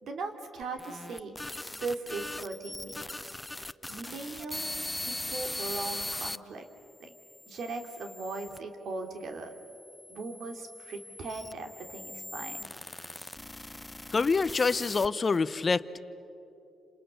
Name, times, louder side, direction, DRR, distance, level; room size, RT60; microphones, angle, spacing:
voice 1, 0.0-1.4 1.7-3.0 3.9-4.7 5.0-6.7 7.0-7.1 7.5-9.5 10.1-12.7, right 3 dB, 60° right, 4 dB, 3.0 m, -39 dB
sound 1, 0.6-6.4 7.0-8.6 9.4-15.4, left 1 dB, 10° left, 0.6 m, -40 dB
voice 2, 14.1-16.0, left 4 dB, 35° left, 14 dB, 0.8 m, -26 dB
30.0 x 27.5 x 6.8 m, 2.8 s
cardioid pair, 90°, 0 cm